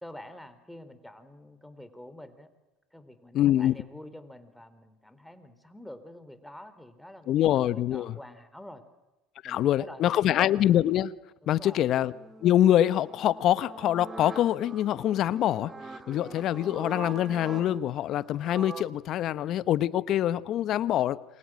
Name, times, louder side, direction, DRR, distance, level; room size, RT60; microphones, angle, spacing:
voice 1, 0.0-2.5 2.9-7.3 7.7-8.8 9.4-10.4 11.4-11.9, left 1 dB, 5° left, 3.9 m, -47 dB
voice 2, 3.3-3.7 7.3-8.1 9.4-11.1 11.5-12.1 12.4-15.7 16.1-21.2, left 12 dB, 55° left, 1.1 m, -25 dB
sound 1, 12.0-18.8, right 3 dB, 30° right, 2.6 m, -43 dB
28.5 x 25.0 x 7.7 m
hypercardioid pair, 70°, 0 cm